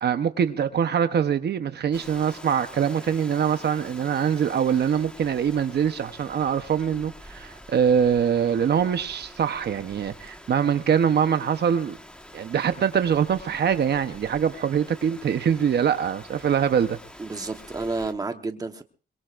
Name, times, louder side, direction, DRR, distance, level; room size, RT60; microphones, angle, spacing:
voice 1, 0.0-12.0 12.3-17.0, right 8 dB, 60° right, 9 dB, 1.0 m, -23 dB
Rain, 1.9-18.1, equal, 5° left, 1.5 m, -46 dB
voice 2, 17.2-18.8, right 3 dB, 20° right, 6 dB, 1.2 m, -30 dB
22.5 x 22.5 x 2.6 m, 0.37 s
wide cardioid pair, 150°, 19 cm